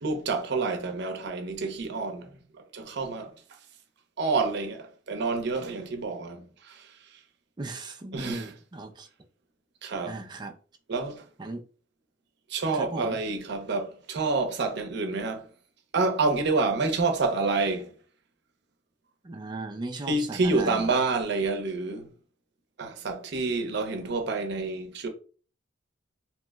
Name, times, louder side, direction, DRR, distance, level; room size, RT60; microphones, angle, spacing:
voice 1, 0.0-2.3 2.7-3.3 4.2-6.8 8.1-8.5 9.8-10.2 10.9-11.2 12.5-15.5 15.9-17.9 20.1-22.0 22.8-25.1, right 3 dB, 60° right, 0.6 m, -28 dB
voice 2, 7.6-9.1 10.0-10.6 11.4-11.6 12.7-13.2 19.2-20.9, right 2 dB, 25° right, 0.4 m, -36 dB
2.9 x 2.1 x 3.4 m
head